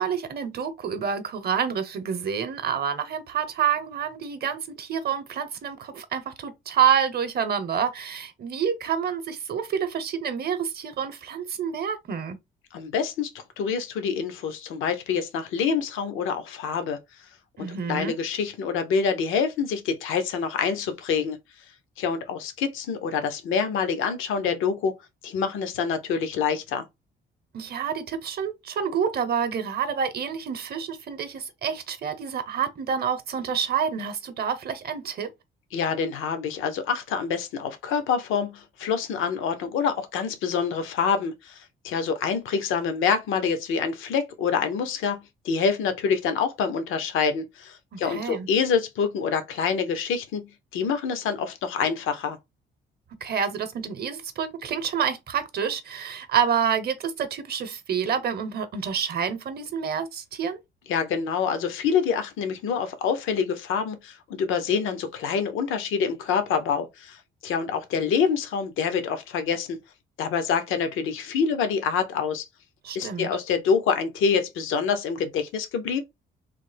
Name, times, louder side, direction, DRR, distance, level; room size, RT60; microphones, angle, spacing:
voice 1, 0.0-12.4 17.6-18.2 27.5-35.3 47.9-48.5 53.2-60.6 72.8-73.3, right 7 dB, 55° right, 0.7 m, -28 dB
voice 2, 12.7-17.0 17.6-21.4 22.0-24.9 25.2-26.8 35.7-52.4 60.9-69.8 70.2-72.4 72.9-76.0, left 6 dB, 85° left, 0.7 m, -26 dB
3.3 x 2.1 x 3.3 m
cardioid pair, 90°, 20 cm